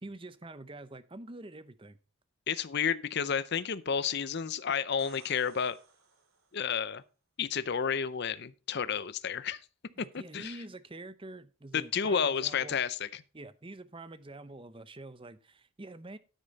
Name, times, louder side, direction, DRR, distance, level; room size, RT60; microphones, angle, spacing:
voice 1, 0.0-2.0 10.0-12.7 13.3-16.2, right 2 dB, 25° right, 0.7 m, -46 dB
voice 2, 2.5-5.8 6.5-7.0 7.4-9.6 10.0-10.6 11.7-13.2, left 7 dB, 50° left, 0.5 m, -31 dB
sound 1, 4.8-6.7 10.4-10.5, right 4 dB, 75° right, 2.7 m, -58 dB
9.9 x 9.0 x 4.0 m
head